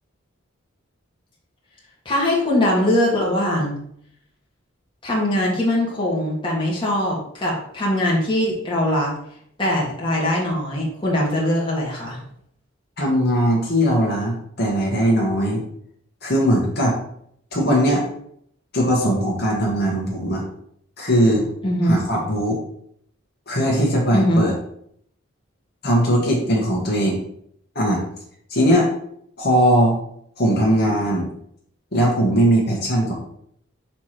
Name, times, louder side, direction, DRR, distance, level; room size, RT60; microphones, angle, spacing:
voice 1, 2.1-3.8 5.0-9.1 9.6-12.2 21.6-22.0 24.1-24.4, left 1 dB, 25° left, -4 dB, 1.8 m, -21 dB
voice 2, 13.0-15.6 16.2-16.9 17.5-18.0 18.7-20.4 21.0-21.5 21.8-22.6 23.5-24.5 25.8-27.2 27.7-28.0 28.5-28.9 29.4-29.9 30.4-31.3 31.9-33.2, equal, 50° left, -3 dB, 1.5 m, -19 dB
6.0 x 3.2 x 5.8 m, 0.69 s
head